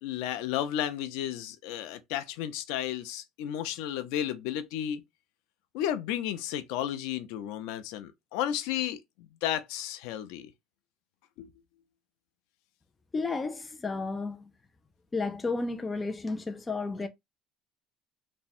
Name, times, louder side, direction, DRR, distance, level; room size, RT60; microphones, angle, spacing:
voice 1, 0.0-5.0 5.7-9.0 9.4-10.5 11.4-11.5, left 11 dB, 85° left, 0.5 m, -33 dB
voice 2, 13.1-14.5 15.1-17.1, left 3 dB, 15° left, 0.3 m, -32 dB
3.5 x 2.1 x 4.2 m
cardioid pair, 180°, 0 cm